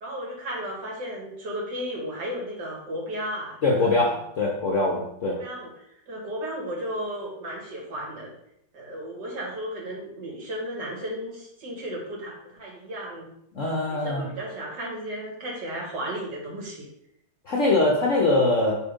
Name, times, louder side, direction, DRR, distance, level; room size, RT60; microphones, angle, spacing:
voice 1, 0.0-4.2 5.3-8.3 8.7-13.3 13.9-16.9, equal, 55° right, -2 dB, 2.2 m, -34 dB
voice 2, 3.6-5.4 13.5-14.3 17.5-18.7, left 2 dB, 50° left, -2 dB, 0.9 m, -22 dB
5.3 x 4.1 x 5.1 m, 0.76 s
omnidirectional pair, 2.3 m